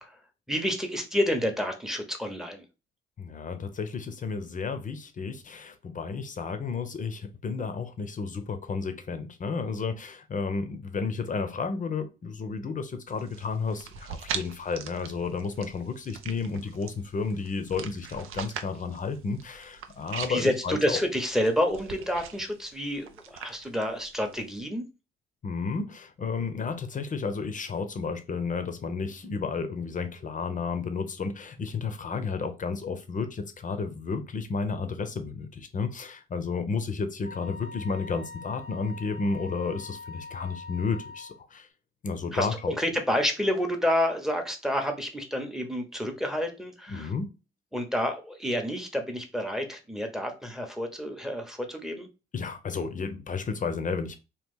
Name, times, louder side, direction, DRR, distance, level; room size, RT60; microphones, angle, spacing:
voice 1, 0.5-2.6 20.3-24.8 42.3-47.1 47.7-52.1, equal, ahead, 0.8 m, -29 dB
voice 2, 3.2-21.0 25.4-41.7 42.0-42.7 46.9-47.3 52.3-54.2, left 4 dB, 40° left, 0.7 m, -32 dB
sound 1, 13.1-24.6, right 8 dB, 75° right, 0.5 m, -42 dB
Wind instrument woodwind instrument, 37.2-41.4, left 4 dB, 45° right, 0.9 m, -44 dB
3.0 x 2.3 x 3.6 m
cardioid pair, 75°, 21 cm